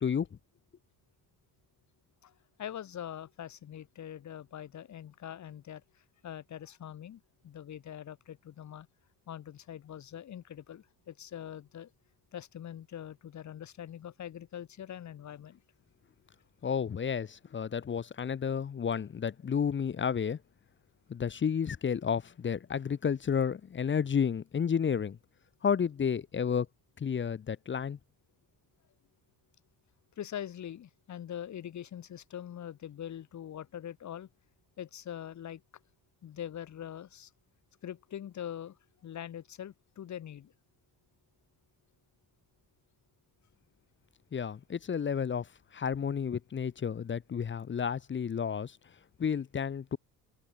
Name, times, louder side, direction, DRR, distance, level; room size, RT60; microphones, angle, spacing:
voice 1, 0.0-0.4 16.6-20.4 21.1-25.2 25.6-26.7 27.0-28.0 44.3-48.8 49.2-50.0, left 7 dB, 30° left, 0.8 m, -31 dB
voice 2, 2.6-5.8 6.2-8.9 9.3-11.9 12.3-15.6 30.2-34.3 34.8-35.6 36.2-37.3 37.8-38.8 39.0-40.5, left 10 dB, 45° left, 1.3 m, -43 dB
cardioid pair, 90°, 38 cm